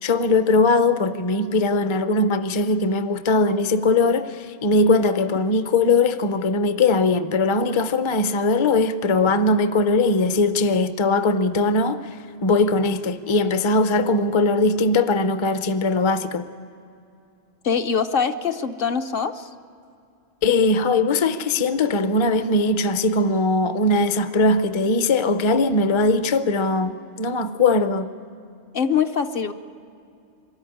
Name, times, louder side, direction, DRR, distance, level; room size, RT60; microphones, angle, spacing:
voice 1, 0.0-16.5 20.4-28.1, left 3 dB, 35° left, 0.5 m, -20 dB
voice 2, 17.6-19.5 28.7-29.5, left 6 dB, 60° left, 0.8 m, -23 dB
23.5 x 14.0 x 9.9 m
omnidirectional pair, 1.2 m